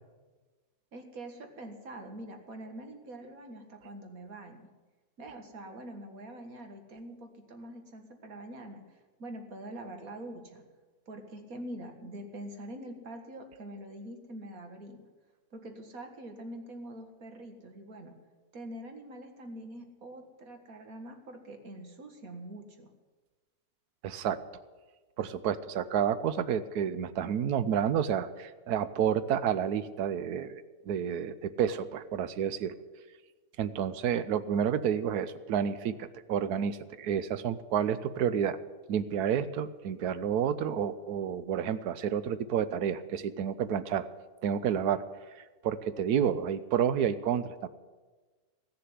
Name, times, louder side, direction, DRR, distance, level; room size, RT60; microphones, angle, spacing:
voice 1, 0.9-4.7 5.2-10.6 11.1-15.0 15.5-18.2 18.5-22.9, right 1 dB, 65° right, 4 dB, 2.1 m, -44 dB
voice 2, 24.0-24.4 25.2-32.7 33.6-38.6 38.9-44.1 44.4-45.0 45.4-47.7, right 8 dB, 80° right, 14 dB, 1.2 m, -30 dB
16.5 x 6.8 x 9.6 m, 1.3 s
omnidirectional pair, 1.6 m